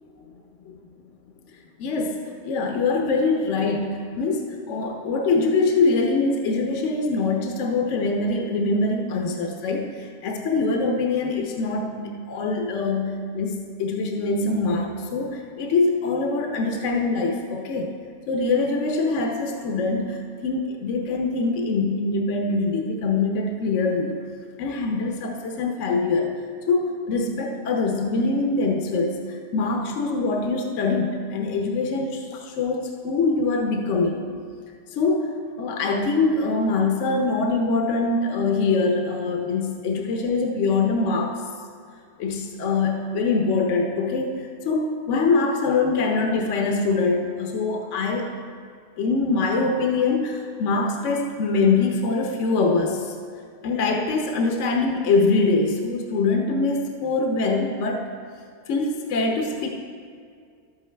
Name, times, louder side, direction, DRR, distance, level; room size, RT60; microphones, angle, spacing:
voice 1, 1.8-17.9 18.3-24.1 24.6-26.3 26.7-34.2 34.9-41.4 42.2-48.3 49.0-53.1 53.6-58.1 58.7-59.7, left 3 dB, 70° left, 2 dB, 1.0 m, -23 dB
11.5 x 8.5 x 3.3 m, 2.2 s
omnidirectional pair, 1.4 m